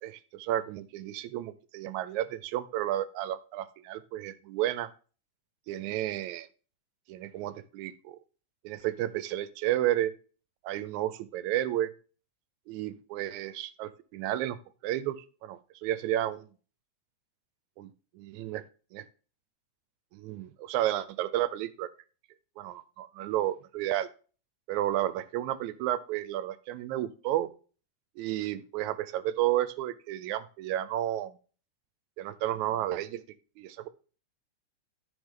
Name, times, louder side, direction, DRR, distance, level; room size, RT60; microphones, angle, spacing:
voice 1, 0.0-4.9 5.7-6.5 7.1-8.2 8.6-10.1 10.6-11.9 12.7-14.6 14.8-16.5 17.8-18.6 18.9-19.1 20.1-21.9 22.6-24.1 24.7-27.5 28.2-31.4 32.2-33.2 33.6-33.9, right 13 dB, 80° right, 15 dB, 2.0 m, -32 dB
12.0 x 5.7 x 3.6 m, 0.37 s
omnidirectional pair, 3.4 m